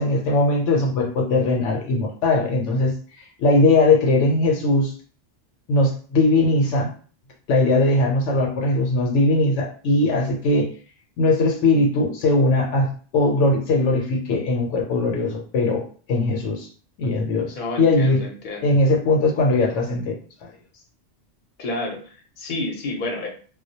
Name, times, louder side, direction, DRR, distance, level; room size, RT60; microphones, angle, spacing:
voice 1, 0.0-4.9 5.7-6.9 7.5-10.7 11.2-16.7 17.0-18.2 18.6-20.2, left 2 dB, 75° left, 1 dB, 0.9 m, -20 dB
voice 2, 17.5-18.7 21.6-23.3, left 2 dB, 50° left, 0 dB, 0.7 m, -30 dB
2.2 x 2.1 x 2.7 m, 0.41 s
omnidirectional pair, 1.3 m